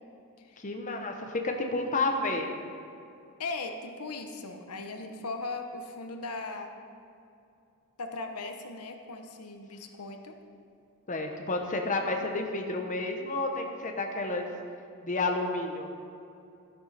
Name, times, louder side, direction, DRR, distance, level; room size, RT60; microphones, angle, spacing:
voice 1, 0.6-2.5 11.1-14.5 15.0-15.9, left 2 dB, 35° left, 3 dB, 1.0 m, -30 dB
voice 2, 3.4-6.7 8.0-10.4, left 3 dB, 85° left, 5 dB, 1.0 m, -38 dB
12.0 x 11.0 x 4.2 m, 2.6 s
head